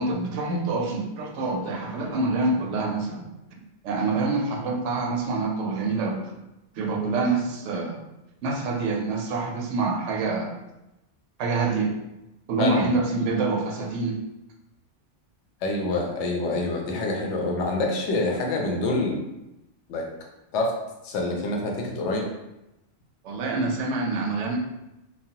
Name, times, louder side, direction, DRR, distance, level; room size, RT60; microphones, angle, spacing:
voice 1, 0.0-3.3 3.8-6.3 6.8-8.0 8.4-10.6 11.4-11.9 12.5-14.2 23.2-24.6, right 3 dB, 85° right, 1 dB, 0.9 m, -26 dB
voice 2, 12.6-12.9 15.6-19.2 19.9-20.0 20.5-20.7 21.0-22.3, left 2 dB, 80° left, 1 dB, 0.9 m, -26 dB
3.0 x 2.1 x 2.7 m, 0.94 s
omnidirectional pair, 1.2 m